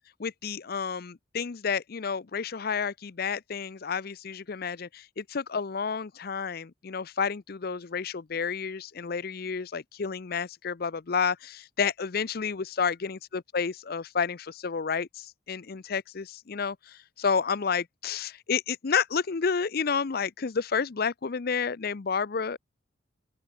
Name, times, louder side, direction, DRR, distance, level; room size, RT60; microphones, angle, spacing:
voice 1, 0.2-22.6, left 6 dB, 50° left, 0.5 m, -30 dB
open air
head